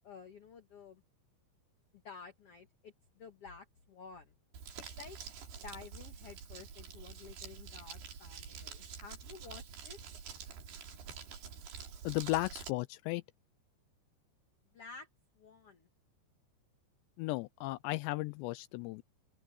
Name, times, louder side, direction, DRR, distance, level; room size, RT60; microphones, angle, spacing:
voice 1, 0.0-1.0 1.9-4.3 4.7-5.2 5.6-10.0 14.7-15.1 15.4-15.9, left 5 dB, 60° left, 1.6 m, -52 dB
Crumpling crinkling, 4.5-12.7, right 6 dB, 65° right, 5.2 m, -47 dB
voice 2, 12.0-13.2 17.2-19.0, left 20 dB, 85° left, 2.7 m, -35 dB
open air
omnidirectional pair, 5.2 m